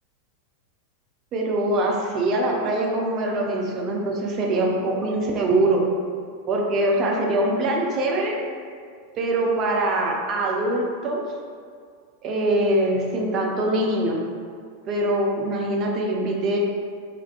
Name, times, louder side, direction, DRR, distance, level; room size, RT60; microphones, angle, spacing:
voice 1, 1.3-5.9 6.5-8.4 9.2-11.2 12.2-14.2 14.9-16.6, right 1 dB, 30° right, -1 dB, 0.4 m, -23 dB
3.3 x 2.3 x 2.3 m, 2.1 s
figure-of-eight pair, 90°, 0 cm